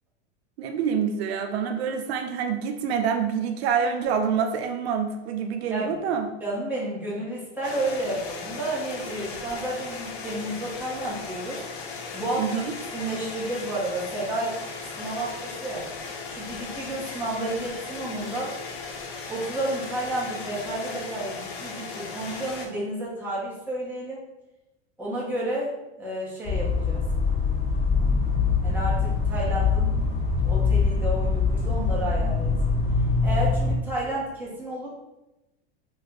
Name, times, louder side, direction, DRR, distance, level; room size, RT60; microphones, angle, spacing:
voice 1, 0.6-6.3 12.4-12.7, right 7 dB, 80° right, 6 dB, 0.5 m, -26 dB
voice 2, 6.4-11.6 12.1-12.6 12.9-14.6 15.0-15.9 16.3-18.5 19.3-24.2 25.0-27.0 28.6-30.1 30.4-32.5 33.2-34.9, right 1 dB, 5° right, -7 dB, 1.2 m, -31 dB
sound 1, 7.6-22.7, left 4 dB, 80° left, 0.8 m, -37 dB
sound 2, 26.4-33.7, left 4 dB, 20° left, 1.3 m, -23 dB
3.1 x 2.6 x 4.0 m, 0.98 s
supercardioid pair, 130°, 31 cm